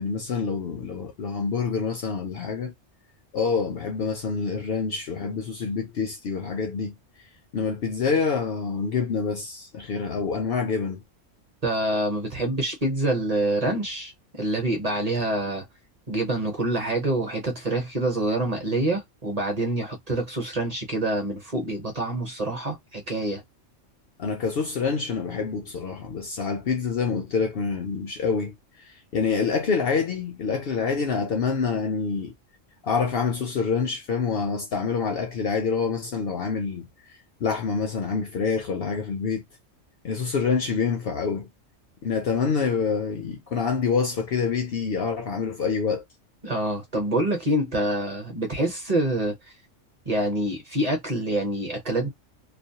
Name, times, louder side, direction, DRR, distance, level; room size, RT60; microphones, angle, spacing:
voice 1, 0.0-2.7 3.3-6.9 7.5-11.0 24.2-32.3 32.8-36.9 37.4-39.4 40.0-41.5 42.0-46.0, left 5 dB, 60° left, 0.7 m, -26 dB
voice 2, 11.6-15.7 16.1-23.4 46.4-49.4 50.1-52.1, right 1 dB, 35° right, 0.8 m, -26 dB
2.4 x 2.0 x 2.8 m
omnidirectional pair, 1.3 m